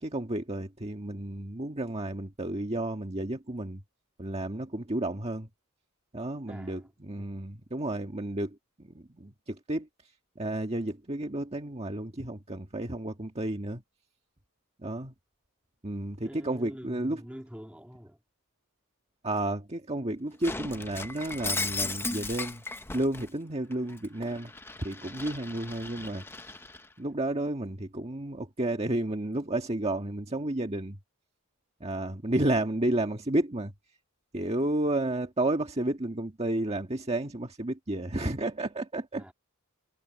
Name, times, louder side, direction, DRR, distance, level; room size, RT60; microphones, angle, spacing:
voice 1, 0.0-3.8 4.2-5.5 6.1-9.9 10.4-13.8 14.8-15.1 15.8-17.2 19.2-22.6 22.9-24.5 24.8-26.2 27.0-31.0 31.8-33.7 34.3-39.3, right 1 dB, 30° right, 1.6 m, -31 dB
voice 2, 6.5-7.4 16.2-18.2 39.1-39.3, equal, 5° right, 3.0 m, -46 dB
Shatter, 20.4-23.3 23.7-26.9, left 3 dB, 10° left, 0.7 m, -36 dB
head